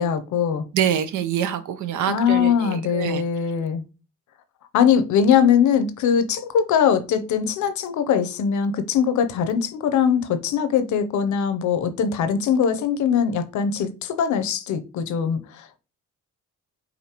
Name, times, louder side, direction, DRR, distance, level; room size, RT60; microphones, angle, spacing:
voice 1, 0.0-0.7 2.1-3.8 4.7-15.8, left 7 dB, 75° left, 0.7 m, -21 dB
voice 2, 0.7-3.2, right 9 dB, 80° right, 0.7 m, -25 dB
5.0 x 2.6 x 2.9 m
cardioid pair, 90°, 30 cm